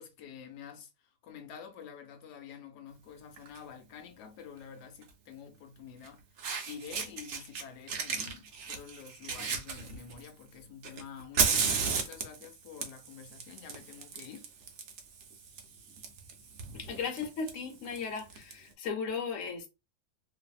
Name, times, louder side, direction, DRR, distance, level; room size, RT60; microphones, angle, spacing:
voice 1, 0.0-6.2 6.7-14.5, left 7 dB, 85° left, 1.1 m, -48 dB
Fire, 3.4-3.6 5.0-5.1 6.0-6.1 6.4-7.6 7.9-10.3 10.8-18.5, right 6 dB, 65° right, 0.9 m, -34 dB
voice 2, 16.7-19.7, left 5 dB, 60° left, 1.0 m, -36 dB
2.6 x 2.6 x 2.3 m
omnidirectional pair, 1.7 m